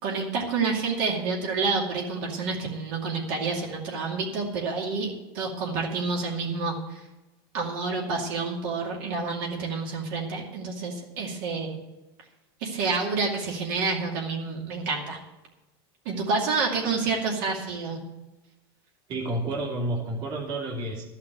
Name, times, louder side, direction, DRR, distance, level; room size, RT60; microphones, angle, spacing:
voice 1, 0.0-7.0 7.5-11.8 12.6-15.2 16.1-18.0, right 4 dB, 55° right, -1 dB, 2.4 m, -28 dB
voice 2, 19.1-21.0, right 2 dB, 35° right, -2 dB, 2.4 m, -30 dB
12.5 x 5.8 x 9.1 m, 1.0 s
supercardioid pair, 160°, 13 cm